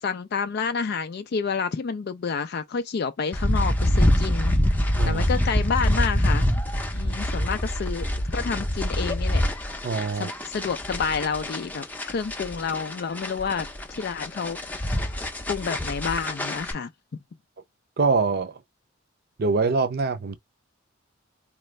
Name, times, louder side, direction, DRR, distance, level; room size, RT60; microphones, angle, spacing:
voice 1, 0.0-4.6 5.0-6.5 6.9-9.4 10.1-13.7 14.0-15.1 15.5-16.9, left 5 dB, 50° left, 0.4 m, -29 dB
sound 1, 3.3-16.7, left 1 dB, 10° left, 0.6 m, -25 dB
voice 2, 9.8-10.3 18.0-18.6 19.4-20.4, right 4 dB, 50° right, 0.6 m, -24 dB
4.1 x 2.4 x 3.1 m
head